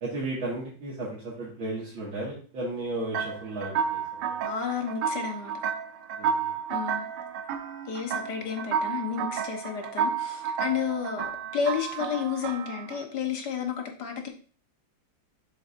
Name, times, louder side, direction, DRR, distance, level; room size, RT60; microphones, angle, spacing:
voice 1, 0.0-4.2 6.2-6.5, right 2 dB, 90° right, 2.7 m, -34 dB
sound 1, 3.1-13.0, right 7 dB, 70° right, 1.2 m, -31 dB
voice 2, 4.4-5.6 6.7-7.1 7.9-14.3, left 7 dB, 60° left, 1.6 m, -31 dB
6.9 x 6.5 x 2.6 m
omnidirectional pair, 2.1 m